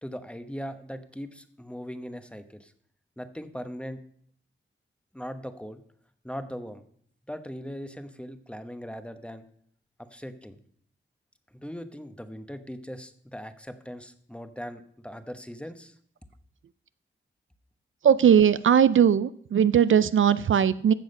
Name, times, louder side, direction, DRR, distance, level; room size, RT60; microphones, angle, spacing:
voice 1, 0.0-2.7 3.2-4.0 5.1-5.8 6.2-6.8 7.3-9.4 10.0-10.6 11.5-16.0, equal, 5° left, 9 dB, 1.0 m, -39 dB
voice 2, 18.0-20.9, right 8 dB, 70° right, 15 dB, 0.4 m, -19 dB
14.5 x 7.2 x 5.4 m, 0.63 s
wide cardioid pair, 95°, 21 cm